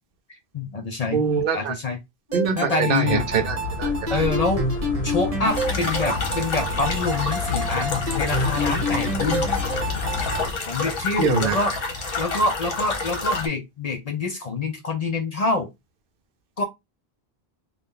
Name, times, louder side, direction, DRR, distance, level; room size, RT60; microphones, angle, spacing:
voice 1, 0.5-1.2 1.5-2.0 2.6-3.2 4.1-4.7 5.0-9.5 10.7-11.7 12.2-15.7 16.6-16.7, left 3 dB, 50° left, 0.5 m, -26 dB
voice 2, 1.1-1.7 2.3-4.2 9.0-9.1 11.2-11.7, right 6 dB, 65° right, 0.7 m, -24 dB
sound 1, 2.3-10.5, right 1 dB, 40° right, 0.8 m, -29 dB
sound 2, 3.1-10.5, left 4 dB, 90° left, 0.9 m, -31 dB
sound 3, 5.5-13.5, left 3 dB, 65° left, 1.1 m, -29 dB
2.7 x 2.3 x 3.5 m
omnidirectional pair, 1.0 m